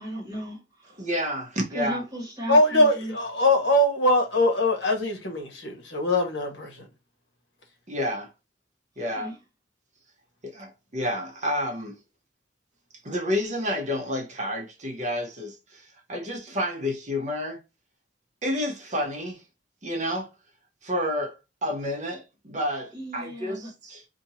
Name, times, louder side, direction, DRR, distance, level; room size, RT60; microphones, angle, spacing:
voice 1, 0.0-1.0 1.7-3.1 9.0-9.4 22.9-23.7, equal, 20° right, 1.4 m, -35 dB
voice 2, 1.0-2.0 7.9-8.3 9.0-9.3 10.4-12.0 13.0-17.6 18.4-19.4 19.8-20.3 20.8-21.4 21.6-24.0, equal, 40° right, 0.7 m, -30 dB
voice 3, 2.5-6.7, left 1 dB, 70° left, 1.1 m, -22 dB
2.8 x 2.5 x 4.1 m
head